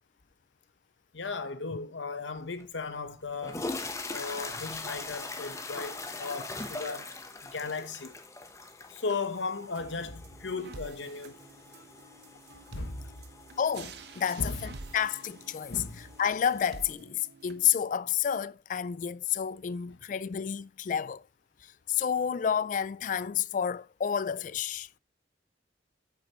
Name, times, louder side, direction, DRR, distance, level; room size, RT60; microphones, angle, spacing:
voice 1, 1.1-3.7 4.1-7.2 7.4-8.2 8.9-11.4 12.0-12.1 12.7-13.1 14.4-14.6 15.7-16.0 19.9-20.0, left 4 dB, 90° left, 1.0 m, -36 dB
sound 1, 2.6-2.7 3.3-16.9, left 3 dB, 15° left, 0.9 m, -42 dB
sound 2, 9.8-17.8, right 3 dB, 60° right, 0.9 m, -49 dB
voice 2, 13.6-15.7 16.2-21.2 21.6-24.9, left 8 dB, 45° left, 0.3 m, -30 dB
8.7 x 7.2 x 3.0 m
head